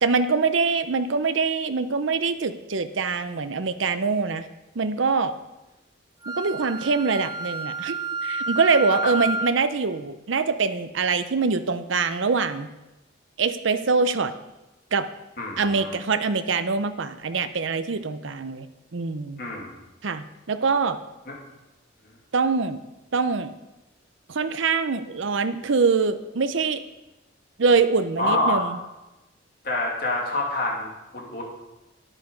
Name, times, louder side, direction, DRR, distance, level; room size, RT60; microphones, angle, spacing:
voice 1, 0.0-4.5 4.8-5.3 6.3-7.9 8.2-12.7 13.4-14.3 14.9-15.1 15.6-18.7 18.9-19.4 20.0-21.0 22.3-22.8 23.1-23.5 24.3-26.8 27.6-28.7, right 4 dB, 75° right, 11 dB, 0.6 m, -24 dB
Wind instrument woodwind instrument, 6.2-9.6, right 3 dB, 20° right, 0.6 m, -30 dB
voice 2, 15.4-16.0 19.4-19.7 21.3-21.4 28.2-28.6 29.6-31.4, left 2 dB, 50° left, -1 dB, 2.4 m, -27 dB
9.7 x 9.0 x 5.2 m, 1.0 s
head